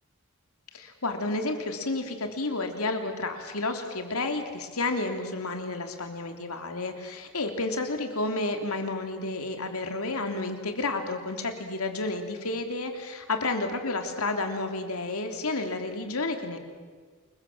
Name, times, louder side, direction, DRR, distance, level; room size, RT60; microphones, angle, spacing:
voice 1, 0.7-16.6, left 2 dB, 90° left, 5 dB, 3.2 m, -31 dB
28.5 x 22.5 x 7.4 m, 1.5 s
head